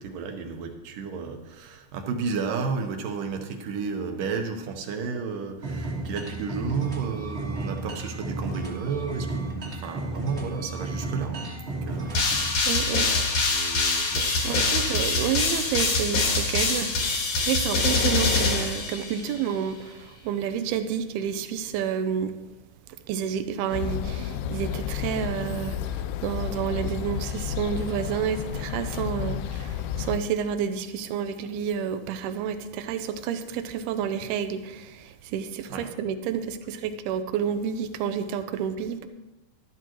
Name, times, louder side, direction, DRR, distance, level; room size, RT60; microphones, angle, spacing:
voice 1, 0.0-13.2 13.5-14.7 15.8-15.9 35.7-35.9, right 5 dB, 70° right, 2.4 m, -33 dB
sound 1, 5.6-12.5, right 2 dB, 35° right, 1.0 m, -33 dB
sound 2, 12.1-19.4, left 3 dB, 55° left, 3.0 m, -24 dB
voice 2, 12.7-13.1 14.4-22.4 23.1-39.1, right 8 dB, 90° right, 2.7 m, -30 dB
sound 3, 23.7-30.2, left 9 dB, 80° left, 2.2 m, -31 dB
12.5 x 12.5 x 3.0 m
omnidirectional pair, 4.4 m